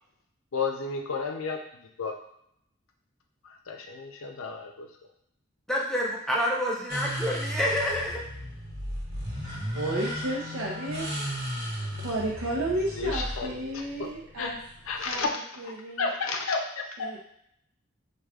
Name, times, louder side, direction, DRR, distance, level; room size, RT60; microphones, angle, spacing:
voice 1, 0.5-1.6 2.0-2.1 3.7-4.9 13.0-13.5 14.4-14.5 14.9-15.3 16.0-16.8, left 4 dB, 75° left, 3 dB, 0.5 m, -31 dB
voice 2, 5.7-8.2, equal, ahead, -4 dB, 0.6 m, -28 dB
sound 1, 6.9-15.2, equal, 40° right, 1.5 m, -35 dB
voice 3, 9.7-11.1 12.0-14.6 14.9-16.1 17.0-17.2, right 1 dB, 75° right, -5 dB, 0.6 m, -32 dB
4.7 x 2.3 x 2.3 m, 0.72 s
head